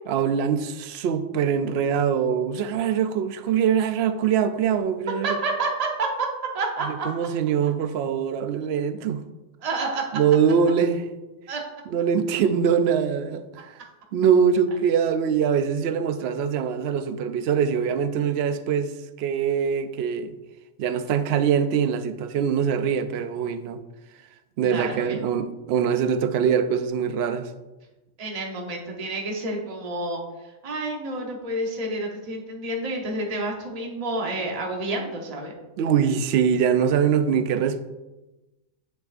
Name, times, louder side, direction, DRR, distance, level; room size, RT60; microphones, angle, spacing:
voice 1, 0.1-5.4 6.8-9.2 10.1-11.1 11.9-13.8 14.1-20.4 20.8-23.8 24.6-27.5 35.8-37.8, right 7 dB, 60° right, 0.7 m, -23 dB
voice 2, 5.2-6.3 6.5-7.1 9.6-10.0 11.5-11.6 24.6-25.2 28.2-35.5, right 2 dB, 30° right, 1.1 m, -29 dB
9.9 x 6.5 x 2.5 m
omnidirectional pair, 1.4 m